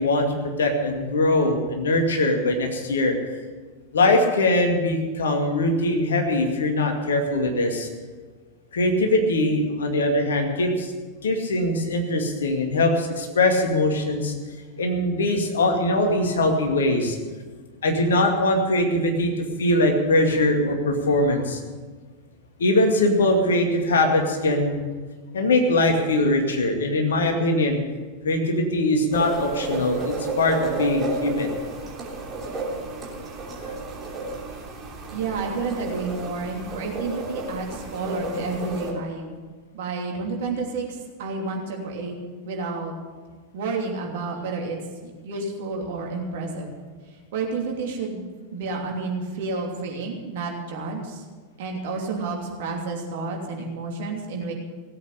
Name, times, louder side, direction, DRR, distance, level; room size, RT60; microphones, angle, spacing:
voice 1, 0.0-3.1 3.9-7.9 8.7-10.9 11.2-14.3 14.8-17.2 17.8-19.3 19.6-21.6 22.6-24.8 25.3-27.8 28.2-31.5, left 1 dB, 65° left, 3 dB, 2.2 m, -22 dB
sound 1, 29.1-38.9, right 2 dB, 25° right, 3.2 m, -32 dB
voice 2, 35.1-39.3 39.7-40.8 41.2-42.1 42.4-42.9 43.5-44.8 45.0-46.7 47.3-48.2 48.5-51.2 51.6-54.5, right 3 dB, 55° right, 1 dB, 3.0 m, -30 dB
17.5 x 8.4 x 8.5 m, 1.4 s
figure-of-eight pair, 90°, 0 cm